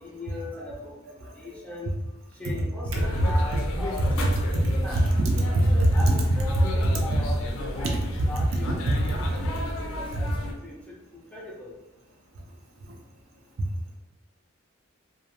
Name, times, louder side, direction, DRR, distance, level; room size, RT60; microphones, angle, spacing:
voice 1, 0.0-1.9 2.4-5.1 5.7-8.0 8.2-9.4 9.8-11.7, left 1 dB, 5° left, -4 dB, 0.3 m, -39 dB
sound 1, 2.9-10.5, left 1 dB, 90° left, 0.4 m, -33 dB
voice 2, 4.0-4.3 4.9-6.1 7.1-7.2 8.7-9.7 10.1-10.4, right 1 dB, 75° right, 0 dB, 0.5 m, -24 dB
2.4 x 2.2 x 2.8 m, 0.98 s
head